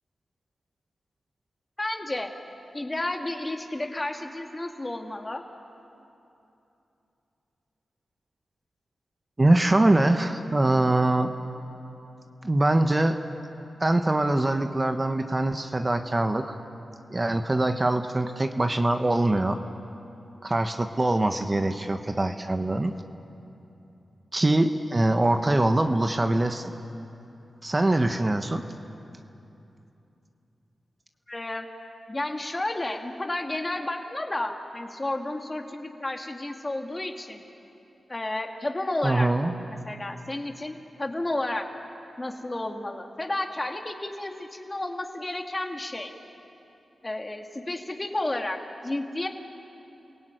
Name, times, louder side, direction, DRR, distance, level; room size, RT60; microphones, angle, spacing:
voice 1, 1.8-2.3 2.7-5.4 31.3-31.7 32.1-37.4 38.1-39.3 39.7-41.7 42.2-46.1 47.0-49.3, left 2 dB, 30° left, 3 dB, 2.6 m, -32 dB
voice 2, 9.4-11.3 12.4-13.2 13.8-16.6 17.1-19.6 20.4-22.9 24.3-26.7 27.6-28.6 39.0-39.5, right 2 dB, 30° right, 6 dB, 1.3 m, -23 dB
30.0 x 17.0 x 9.2 m, 2.9 s
cardioid pair, 45°, 0 cm